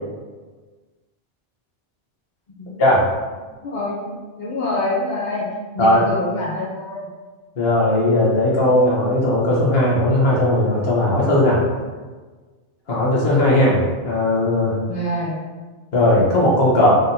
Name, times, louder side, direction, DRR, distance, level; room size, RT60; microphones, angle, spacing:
voice 1, 3.6-5.5 5.7-7.1 14.9-15.4, left 1 dB, 50° left, -6 dB, 1.0 m, -26 dB
voice 2, 7.6-11.6 12.9-13.8 14.0-14.8 15.9-17.0, left 1 dB, 70° left, -6 dB, 1.3 m, -17 dB
3.8 x 3.6 x 2.8 m, 1.4 s
omnidirectional pair, 1.0 m